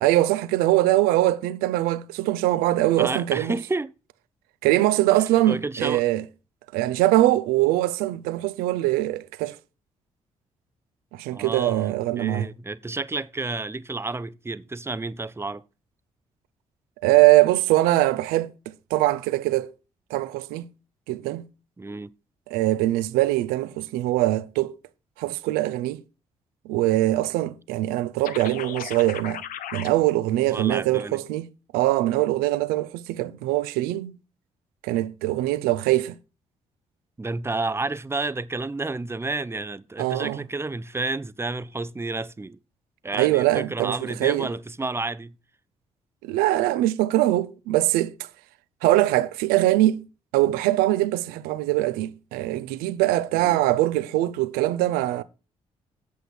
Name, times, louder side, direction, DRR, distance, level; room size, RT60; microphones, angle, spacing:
voice 1, 0.0-3.5 4.6-6.2 6.7-9.6 11.1-12.5 17.0-18.5 18.9-19.7 20.1-20.7 21.1-21.4 22.5-24.7 25.2-26.0 26.6-29.4 29.7-31.5 31.7-34.1 34.8-36.2 40.0-40.4 43.1-44.5 46.2-48.1 48.8-50.0 50.3-55.2, right 16 dB, 75° right, 0.6 m, -22 dB
voice 2, 3.0-3.9 5.5-6.1 11.3-15.6 21.8-22.1 30.5-31.2 37.2-42.6 43.0-45.3 53.4-53.6, right 3 dB, 15° right, 0.6 m, -30 dB
sound 1, 28.2-29.9, left 10 dB, 60° left, 0.7 m, -35 dB
8.3 x 7.8 x 4.4 m
hypercardioid pair, 40°, 16 cm